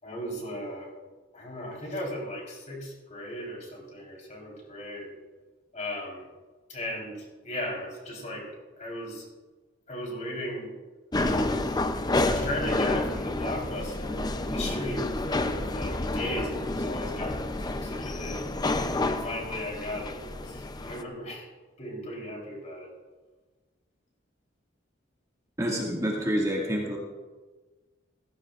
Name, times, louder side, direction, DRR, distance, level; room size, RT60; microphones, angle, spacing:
voice 1, 0.0-0.9 1.3-5.1 5.7-6.2 6.7-8.5 8.8-9.3 9.9-10.7 11.1-11.6 12.2-18.4 19.0-21.5 21.8-22.9, left 1 dB, 40° left, -1 dB, 4.0 m, -36 dB
sound 1, 11.1-21.0, left 2 dB, 20° left, 0.5 m, -29 dB
voice 2, 25.6-27.0, equal, 15° right, -3 dB, 2.0 m, -27 dB
16.0 x 15.5 x 2.5 m, 1.3 s
head